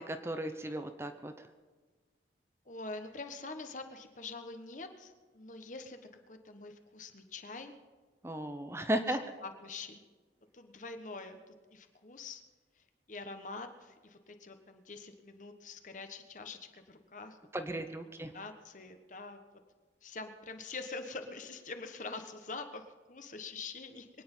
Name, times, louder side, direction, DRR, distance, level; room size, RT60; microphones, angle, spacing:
voice 1, 0.0-1.5 8.2-9.2 17.5-18.3, right 1 dB, 15° right, 7 dB, 0.7 m, -35 dB
voice 2, 2.6-6.0 6.3-7.7 9.0-10.0 10.5-12.4 12.7-17.4 17.7-17.8 18.3-19.4 20.0-24.1, left 3 dB, 45° left, 6 dB, 1.3 m, -45 dB
23.5 x 9.7 x 5.5 m, 1.4 s
head